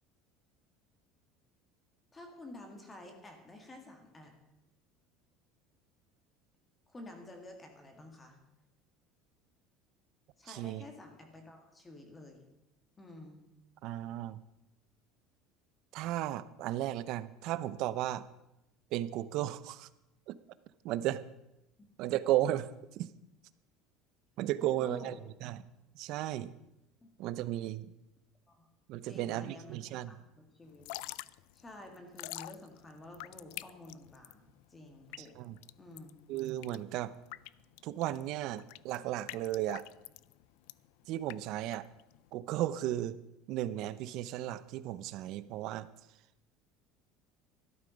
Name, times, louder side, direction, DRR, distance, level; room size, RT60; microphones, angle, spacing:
voice 1, 2.1-4.3 6.9-8.4 10.4-12.4 13.0-13.4 24.6-25.2 27.0-27.1 28.5-28.7 29.0-30.9 31.5-35.4 35.8-36.2, left 1 dB, 15° left, 4 dB, 2.0 m, -50 dB
voice 2, 10.5-10.8 13.8-14.4 15.9-18.2 18.9-19.9 20.3-20.4 20.8-21.2 22.0-23.1 24.4-25.1 25.4-25.7 25.9-26.5 27.2-27.9 28.9-30.1 35.2-35.6 36.3-37.1 37.8-39.9 41.1-41.9 42.3-43.2 43.5-45.9, right 13 dB, 55° right, 16 dB, 0.6 m, -35 dB
Drip / Trickle dribble, 30.7-42.3, left 20 dB, 75° left, 0.3 m, -47 dB
13.0 x 11.0 x 5.2 m, 0.91 s
cardioid pair, 155°, 0 cm